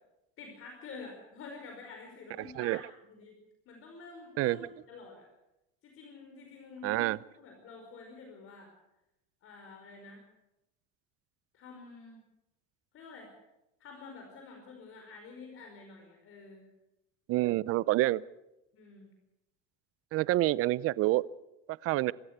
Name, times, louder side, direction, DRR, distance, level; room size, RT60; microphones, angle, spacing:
voice 1, 0.4-3.4 3.6-5.3 5.8-7.1 7.4-8.7 9.4-10.2 11.5-12.2 12.9-13.3 13.8-16.7 18.7-19.1, left 4 dB, 45° left, 2 dB, 5.0 m, -49 dB
voice 2, 2.4-2.8 4.4-4.6 6.8-7.2 17.3-18.2 20.1-21.2 21.7-22.1, right 17 dB, 50° right, 21 dB, 0.7 m, -27 dB
26.0 x 13.5 x 8.1 m, 0.92 s
cardioid pair, 130°, 30 cm